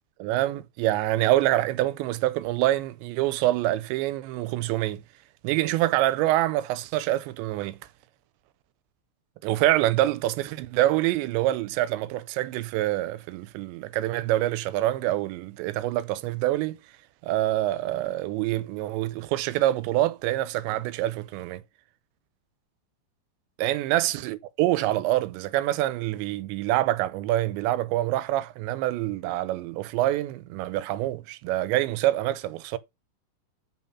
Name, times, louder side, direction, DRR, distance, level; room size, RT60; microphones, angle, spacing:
voice 1, 0.2-5.0 5.4-7.8 9.4-16.8 17.2-21.6 23.6-32.8, right 15 dB, 90° right, 3.0 m, -26 dB
7.3 x 5.9 x 5.6 m
omnidirectional pair, 5.0 m